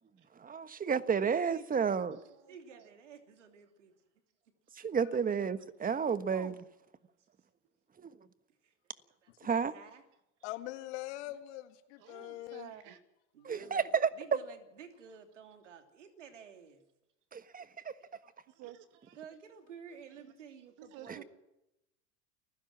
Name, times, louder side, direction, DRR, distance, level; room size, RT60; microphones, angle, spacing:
voice 1, 0.4-2.2 4.7-6.6 8.0-8.1 9.4-9.7 13.4-14.1 17.3-17.9 21.1-21.2, right 6 dB, 25° right, 1.3 m, -31 dB
voice 2, 1.2-1.6 2.5-3.9 8.6-8.7 9.2-9.3 9.7-10.0 13.3-16.8 18.2-18.3 19.1-21.2, right 7 dB, 90° right, 3.0 m, -52 dB
voice 3, 1.8-2.9 6.3-6.6 12.0-13.0 18.5-19.2 20.8-21.2, right 11 dB, 60° right, 2.3 m, -51 dB
voice 4, 10.4-12.7, left 16 dB, 70° left, 2.0 m, -42 dB
29.0 x 16.0 x 6.1 m
hypercardioid pair, 85°, 35 cm